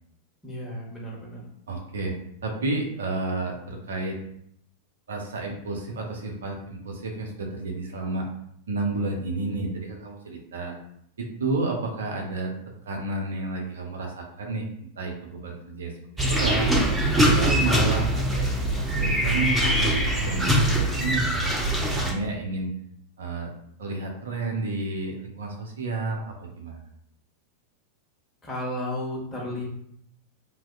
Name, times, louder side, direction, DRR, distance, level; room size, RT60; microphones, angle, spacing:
voice 1, 0.4-1.4 28.4-29.7, left 1 dB, 15° left, -5 dB, 1.2 m, -33 dB
voice 2, 1.7-2.1 2.4-4.2 5.1-8.3 8.7-10.7 11.2-12.5 12.8-16.7 17.1-18.5 18.8-19.9 20.2-21.2 21.8-22.7 23.2-23.5 23.8-26.9, right 3 dB, 65° right, 1 dB, 0.5 m, -31 dB
sound 1, 16.2-22.1, right 1 dB, 10° right, 0.6 m, -23 dB
3.4 x 2.6 x 2.3 m, 0.70 s
figure-of-eight pair, 90°, 0 cm